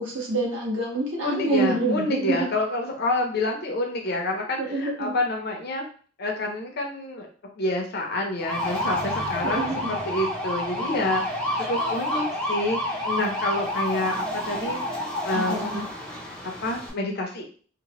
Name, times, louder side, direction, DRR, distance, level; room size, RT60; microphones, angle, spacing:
voice 1, 0.0-2.5 4.3-5.1 9.5-9.9 15.3-15.9, right 2 dB, 70° right, -4 dB, 1.2 m, -27 dB
voice 2, 1.2-5.8 6.2-7.3 7.6-14.8 15.2-15.9 16.4-17.4, left 2 dB, 50° left, 1 dB, 0.6 m, -28 dB
sound 1, 8.4-16.9, left 1 dB, 5° left, 0.5 m, -29 dB
2.9 x 2.1 x 2.9 m, 0.43 s
head